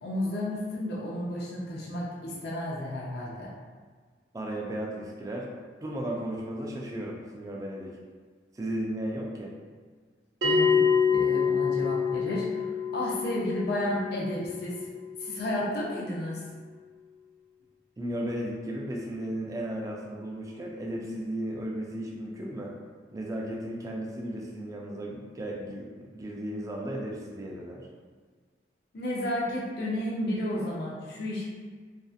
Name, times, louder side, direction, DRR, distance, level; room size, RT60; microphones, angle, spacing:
voice 1, 0.0-3.5 10.4-10.8 11.1-14.7 15.2-16.4 28.9-31.4, left 1 dB, 60° left, -5 dB, 0.5 m, -32 dB
voice 2, 4.3-5.5 5.8-7.9 8.5-9.5 18.0-22.7 23.1-25.9 26.1-27.9, right 1 dB, 20° right, -2 dB, 0.3 m, -35 dB
Bell, 10.4-15.5, left 6 dB, 70° right, 0.5 m, -27 dB
2.5 x 2.4 x 2.4 m, 1.5 s
head